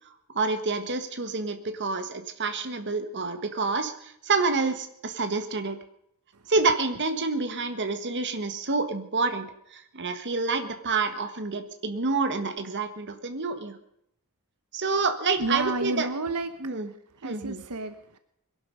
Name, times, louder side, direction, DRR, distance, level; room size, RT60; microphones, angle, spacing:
voice 1, 0.3-5.8 6.5-13.8 14.7-16.1 16.6-16.9 17.2-17.6, right 4 dB, 55° right, 9 dB, 1.6 m, -28 dB
voice 2, 15.4-16.5 17.2-18.2, right 2 dB, 90° right, 10 dB, 1.1 m, -30 dB
22.0 x 12.0 x 5.4 m, 0.74 s
head